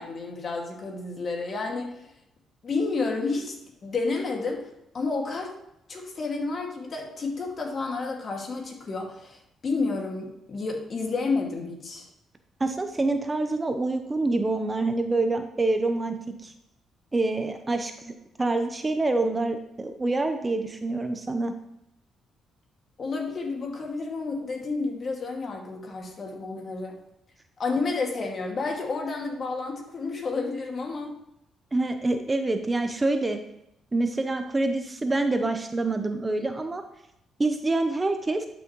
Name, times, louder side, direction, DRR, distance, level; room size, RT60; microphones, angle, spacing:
voice 1, 0.0-2.0 2.6-3.5 3.8-4.6 4.9-5.5 5.9-12.0 23.0-27.0 27.6-31.2, left 3 dB, 45° left, 1 dB, 2.1 m, -30 dB
voice 2, 12.6-16.1 16.4-16.5 17.1-18.1 18.4-21.5 31.7-33.4 33.9-36.8 37.4-38.5, right 2 dB, 20° right, 7 dB, 0.7 m, -26 dB
11.5 x 6.2 x 3.1 m, 0.80 s
cardioid pair, 90°, 0 cm